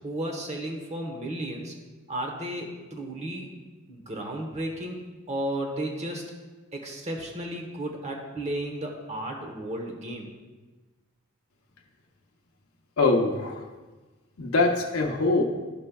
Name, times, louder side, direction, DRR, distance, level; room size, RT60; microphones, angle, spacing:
voice 1, 0.0-1.7 2.1-3.5 3.9-5.0 5.3-6.2 6.7-10.3, right 1 dB, 30° right, 1 dB, 1.0 m, -33 dB
voice 2, 13.0-13.7 14.4-15.4, left 3 dB, 75° left, 0 dB, 0.7 m, -23 dB
12.5 x 5.2 x 2.3 m, 1.2 s
head